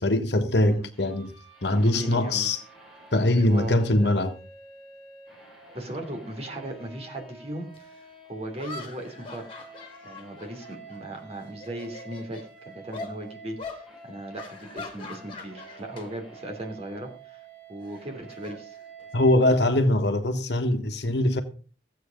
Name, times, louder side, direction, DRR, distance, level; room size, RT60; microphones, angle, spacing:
voice 1, 0.0-1.3 1.6-2.6 3.1-4.3 19.1-21.4, left 1 dB, 65° left, 1.5 m, -22 dB
sound 1, 0.9-19.3, right 3 dB, ahead, 7.4 m, -49 dB
voice 2, 1.7-2.5 3.2-4.1 5.7-7.9 8.3-9.7 10.0-17.4 17.7-18.8, right 1 dB, 35° right, 3.0 m, -37 dB
sound 2, 7.7-7.8 8.5-11.2 11.5-12.5 12.9-13.2 13.6-13.8 14.3-16.1 16.4-16.6 17.8-19.3, left 3 dB, 30° left, 2.7 m, -42 dB
15.0 x 8.5 x 5.2 m
head